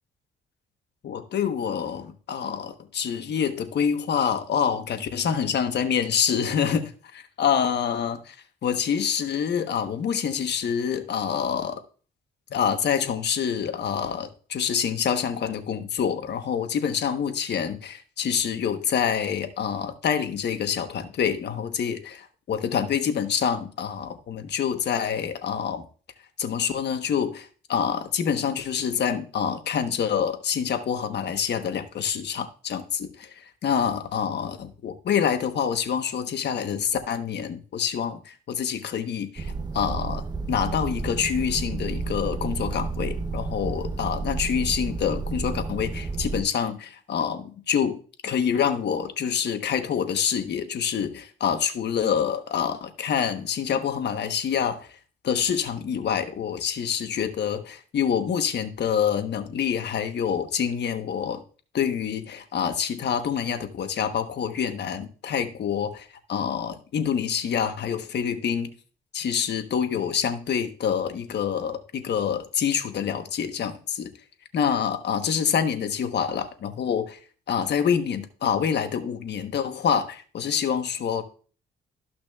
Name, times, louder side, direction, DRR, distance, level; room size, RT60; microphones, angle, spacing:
voice 1, 1.0-8.4 8.6-11.8 12.5-25.9 26.4-40.2 40.5-55.0 55.2-61.4 61.7-68.7 69.1-74.1 74.5-77.2 77.5-81.2, left 7 dB, 60° left, 1.1 m, -26 dB
sound 1, 39.4-46.4, right 4 dB, 20° right, 0.6 m, -31 dB
13.5 x 5.9 x 2.4 m
cardioid pair, 90°, 20 cm